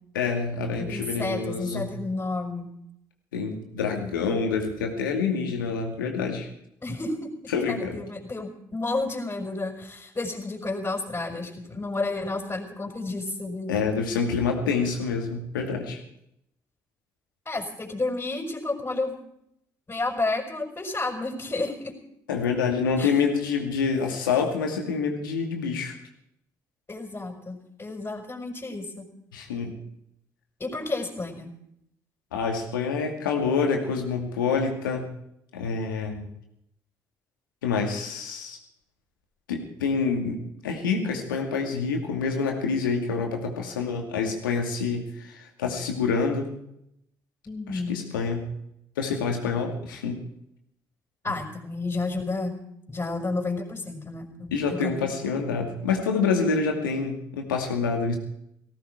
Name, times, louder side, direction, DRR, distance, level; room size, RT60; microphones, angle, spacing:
voice 1, 0.1-1.9 3.3-6.5 7.5-8.0 13.7-16.0 22.3-25.9 29.3-29.8 32.3-35.1 35.5-36.2 37.6-38.6 39.5-40.4 40.6-46.5 47.7-48.5 49.0-50.2 54.5-58.2, left 5 dB, 85° left, 3 dB, 2.3 m, -27 dB
voice 2, 0.8-2.7 6.8-13.7 17.5-19.2 19.9-21.9 23.0-23.2 26.9-29.1 30.6-31.5 47.5-48.0 51.2-52.6 52.9-55.1, left 2 dB, 25° left, -2 dB, 5.2 m, -31 dB
18.5 x 16.0 x 4.8 m, 0.77 s
hypercardioid pair, 45°, 11 cm